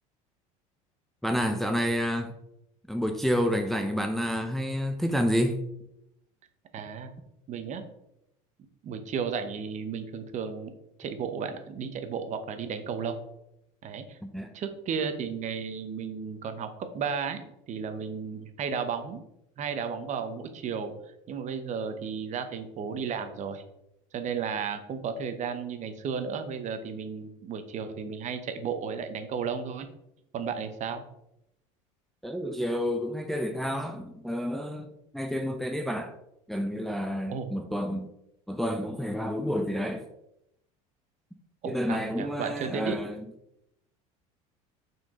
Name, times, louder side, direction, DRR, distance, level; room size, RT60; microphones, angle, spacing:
voice 1, 1.2-2.4 2.9-5.6 14.2-14.5 32.2-34.9 35.1-36.1 36.5-38.1 38.5-40.0 41.6-43.3, equal, ahead, 0.6 m, -29 dB
voice 2, 6.7-7.1 7.5-7.8 8.8-10.7 11.0-13.2 13.8-14.2 14.5-19.2 19.6-20.9 21.3-23.6 24.1-29.9 30.3-31.0 37.3-37.5 41.6-43.0, right 6 dB, 45° right, 1.0 m, -33 dB
5.8 x 4.5 x 3.7 m
supercardioid pair, 95°, 18 cm